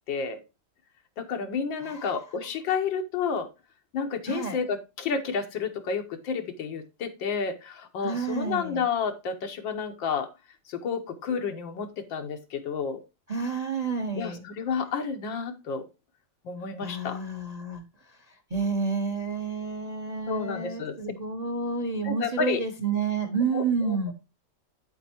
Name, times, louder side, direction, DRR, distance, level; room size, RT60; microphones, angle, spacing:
voice 1, 0.1-0.4 1.2-3.5 3.9-10.3 10.7-13.0 14.2-15.9 16.5-17.2 20.3-21.0 22.0-22.6 23.5-24.1, left 6 dB, 85° left, 5 dB, 1.8 m, -30 dB
voice 2, 1.8-2.2 4.3-4.6 8.0-8.8 13.3-14.4 16.8-17.8 18.5-24.1, right 4 dB, 30° right, 6 dB, 0.8 m, -30 dB
8.3 x 7.9 x 2.8 m, 0.25 s
omnidirectional pair, 2.0 m